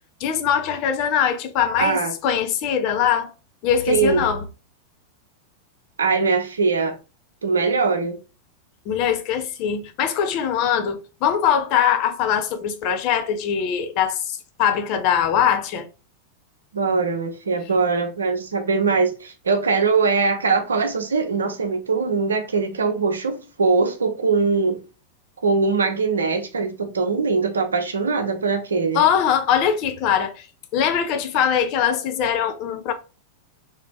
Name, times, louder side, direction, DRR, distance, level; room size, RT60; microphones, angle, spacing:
voice 1, 0.2-3.3 3.6-4.4 8.9-15.9 28.9-30.5 30.7-32.9, left 8 dB, 40° left, 0.6 m, -22 dB
voice 2, 1.8-2.1 3.9-4.3 6.0-7.0 7.4-8.2 16.7-24.8 25.4-29.0, right 4 dB, 70° right, 0.7 m, -21 dB
3.2 x 2.9 x 3.3 m
figure-of-eight pair, 90°, 0 cm